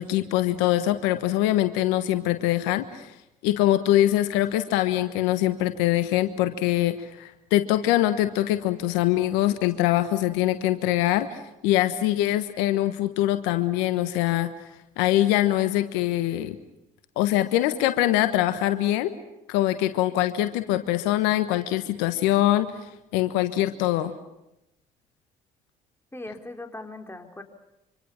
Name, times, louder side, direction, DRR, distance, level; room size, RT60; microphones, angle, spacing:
voice 1, 0.0-3.1 3.4-14.5 15.0-16.6 17.2-19.1 19.5-24.1, left 14 dB, 85° left, 10 dB, 1.3 m, -23 dB
voice 2, 26.1-27.4, left 2 dB, 15° left, 4 dB, 4.3 m, -39 dB
26.0 x 26.0 x 7.2 m, 0.88 s
hypercardioid pair, 50°, 18 cm